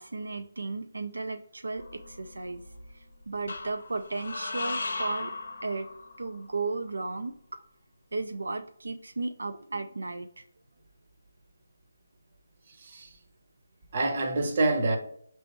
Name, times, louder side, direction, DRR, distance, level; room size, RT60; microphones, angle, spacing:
voice 1, 0.0-2.6 2.9-5.3 5.6-5.9 6.2-7.6 8.1-10.4, right 3 dB, 85° right, 0.3 m, -35 dB
sound 1, 1.8-2.6 3.5-6.4, left 3 dB, 65° left, 0.6 m, -37 dB
voice 2, 12.7-13.2 13.9-15.0, right 2 dB, 40° right, 0.8 m, -27 dB
5.2 x 3.1 x 2.9 m
figure-of-eight pair, 160°, 0 cm